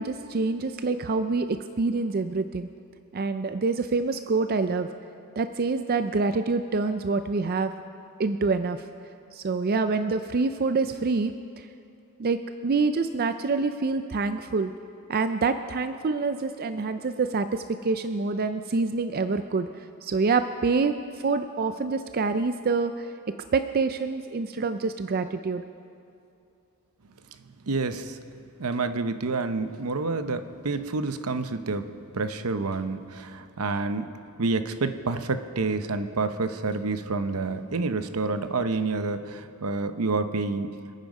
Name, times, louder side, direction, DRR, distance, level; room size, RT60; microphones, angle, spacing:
voice 1, 0.0-2.7 3.1-4.9 5.4-7.7 8.2-8.8 9.3-11.7 12.2-14.7 15.1-19.7 20.0-23.1 23.5-25.6, right 4 dB, 45° right, 9 dB, 0.4 m, -26 dB
voice 2, 27.7-28.2 28.6-34.1 34.4-40.7, right 3 dB, 75° right, 10 dB, 0.8 m, -28 dB
26.5 x 9.3 x 5.3 m, 2.5 s
head